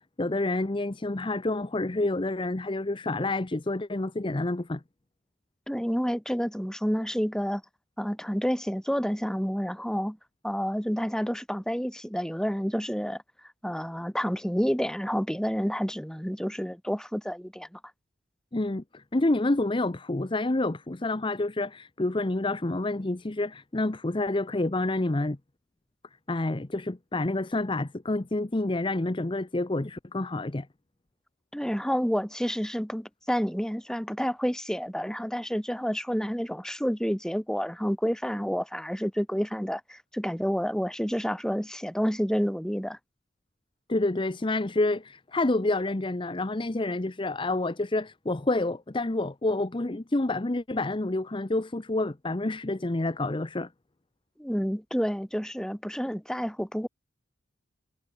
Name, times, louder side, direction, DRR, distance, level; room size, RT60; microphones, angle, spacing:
voice 1, 0.0-4.8 18.5-25.4 26.3-30.7 43.9-53.7, left 2 dB, 25° left, 0.7 m, -28 dB
voice 2, 5.7-7.6 8.0-10.2 10.4-13.2 13.6-17.8 31.5-43.0 54.4-56.9, equal, 5° left, 6.8 m, -29 dB
head